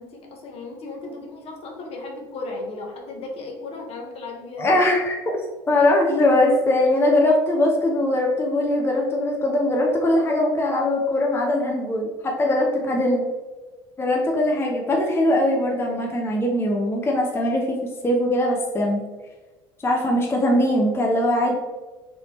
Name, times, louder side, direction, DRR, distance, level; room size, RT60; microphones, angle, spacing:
voice 1, 0.0-4.9, left 2 dB, 50° left, 1 dB, 0.8 m, -35 dB
voice 2, 4.6-5.2 5.7-13.3 14.0-17.8 18.0-19.0 19.8-21.5, left 1 dB, 20° left, 0 dB, 0.6 m, -21 dB
3.4 x 2.6 x 3.0 m, 1.2 s
supercardioid pair, 85°, 13 cm